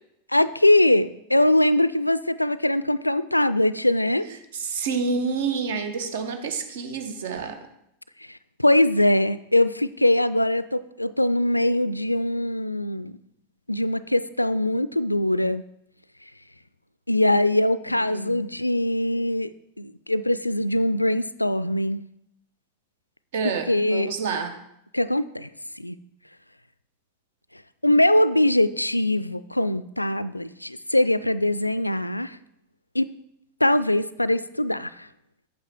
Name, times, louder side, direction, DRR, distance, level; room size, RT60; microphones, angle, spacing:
voice 1, 0.3-4.3 8.3-13.2 13.7-15.6 17.1-19.5 19.8-22.0 23.7-24.1 24.9-25.5 25.8-26.0 27.8-32.4 32.9-33.1 33.6-35.1, left 1 dB, 85° left, 16 dB, 0.3 m, -22 dB
voice 2, 4.3-7.7 17.9-18.5 23.3-24.6, right 5 dB, 55° right, 8 dB, 1.1 m, -29 dB
8.5 x 8.0 x 3.6 m, 0.79 s
figure-of-eight pair, 90°, 0 cm